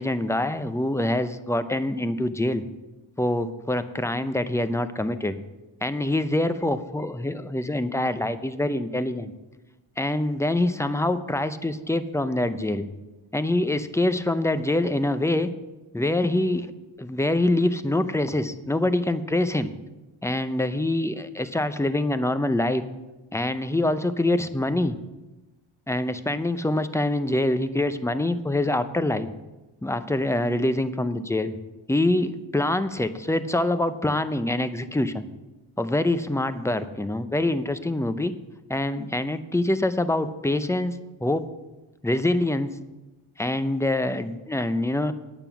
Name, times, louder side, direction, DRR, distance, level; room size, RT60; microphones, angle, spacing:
voice 1, 0.0-2.6 3.2-5.4 5.8-9.3 10.0-12.9 13.3-15.5 15.9-16.7 17.0-19.7 20.2-22.8 23.3-25.0 25.9-29.3 29.8-31.5 31.9-35.3 35.8-38.3 38.7-41.5 42.0-42.8 43.4-45.1, left 1 dB, 5° left, 11 dB, 0.5 m, -25 dB
9.0 x 8.9 x 5.9 m, 1.1 s
cardioid pair, 90°, 49 cm